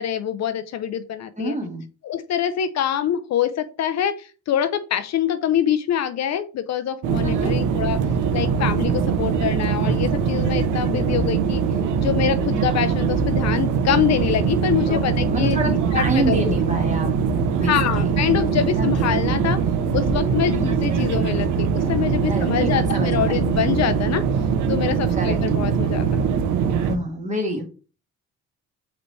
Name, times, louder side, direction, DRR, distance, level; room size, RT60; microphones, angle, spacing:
voice 1, 0.0-1.6 2.0-8.0 8.3-11.6 12.0-16.6 17.6-19.6 19.9-24.2 24.7-26.2, left 9 dB, 60° left, 12 dB, 0.5 m, -25 dB
voice 2, 1.4-1.8 7.2-7.5 14.9-17.1 17.5-18.1 18.8-19.1 22.3-23.4 25.2-25.4 26.8-27.6, right 1 dB, 25° right, 3 dB, 1.4 m, -27 dB
sound 1, 7.0-27.0, right 6 dB, 80° right, 0.6 m, -22 dB
5.2 x 3.1 x 3.1 m, 0.34 s
cardioid pair, 90°, 30 cm